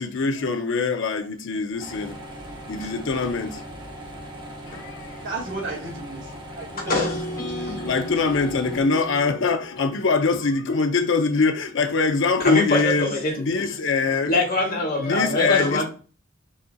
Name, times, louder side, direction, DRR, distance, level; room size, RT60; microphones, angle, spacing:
voice 1, 0.0-2.2 2.7-3.6 4.7-5.1 7.8-13.1 13.4-14.3 15.0-15.8, left 4 dB, 65° left, 0.6 m, -23 dB
sound 1, 1.8-8.8, right 1 dB, 25° right, 1.0 m, -39 dB
voice 2, 5.2-7.8, right 1 dB, 65° right, 2.0 m, -34 dB
sound 2, 6.9-11.0, equal, 15° left, 1.0 m, -35 dB
voice 3, 12.4-13.4 14.3-15.9, left 2 dB, 50° left, 1.7 m, -23 dB
4.9 x 4.2 x 2.3 m
head